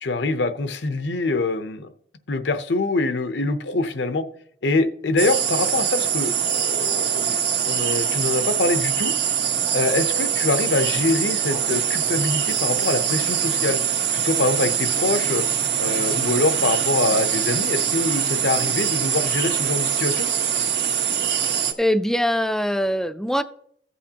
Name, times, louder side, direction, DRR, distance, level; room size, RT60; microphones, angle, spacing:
voice 1, 0.0-1.9 2.3-4.2 4.6-9.1 9.7-13.8 14.1-15.4 15.8-20.3, left 2 dB, 75° left, 10 dB, 0.8 m, -24 dB
sound 1, 5.2-21.7, right 8 dB, 70° right, 1.1 m, -23 dB
voice 2, 21.8-23.4, equal, 5° left, 11 dB, 0.4 m, -22 dB
14.5 x 8.4 x 2.9 m, 0.65 s
head